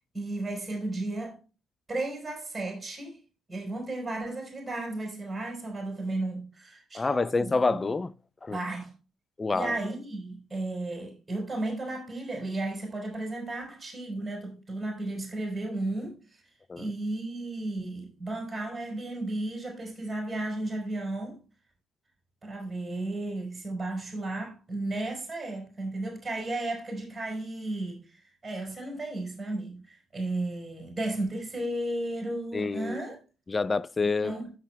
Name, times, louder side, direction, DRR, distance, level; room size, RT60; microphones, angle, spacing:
voice 1, 0.1-1.4 1.9-3.2 3.5-7.8 8.5-8.9 9.5-16.4 16.8-21.4 22.4-33.2 34.2-34.5, right 2 dB, 20° right, 4.8 m, -34 dB
voice 2, 6.9-8.1 8.4-8.6 9.4-9.7 16.7-16.9 32.5-33.0 33.5-34.3, left 3 dB, 30° left, 0.5 m, -27 dB
15.5 x 5.9 x 2.3 m
hypercardioid pair, 50°, 0 cm